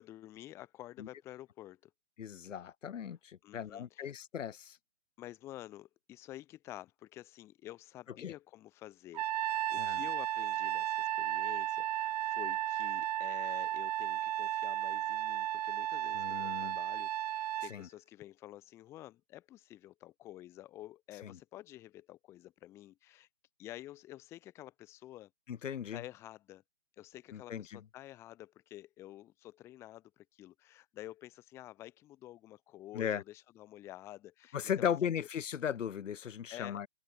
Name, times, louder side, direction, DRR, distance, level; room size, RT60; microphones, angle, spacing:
voice 1, 0.0-1.9 3.4-4.1 5.2-23.3 23.6-25.3 25.9-26.6 27.0-35.1 36.5-36.8, left 14 dB, 5° left, 0.6 m, -50 dB
voice 2, 2.2-4.8 8.2-8.3 9.8-10.0 16.2-16.8 17.7-17.9 21.2-21.3 25.5-26.0 27.3-27.8 32.9-33.2 34.5-36.9, left 8 dB, 85° left, 0.7 m, -37 dB
Trumpet, 9.1-17.7, right 12 dB, 35° right, 0.7 m, -34 dB
hypercardioid pair, 145°, 37 cm